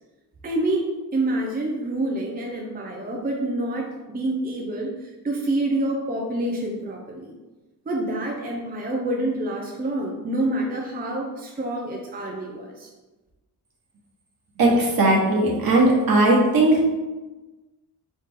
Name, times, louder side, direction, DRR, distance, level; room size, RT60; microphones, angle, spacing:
voice 1, 0.4-7.3 7.9-12.9, right 1 dB, 25° right, -1 dB, 0.6 m, -27 dB
voice 2, 14.6-16.8, right 2 dB, 65° right, -2 dB, 1.4 m, -18 dB
4.1 x 3.3 x 3.5 m, 1.1 s
cardioid pair, 110°, 39 cm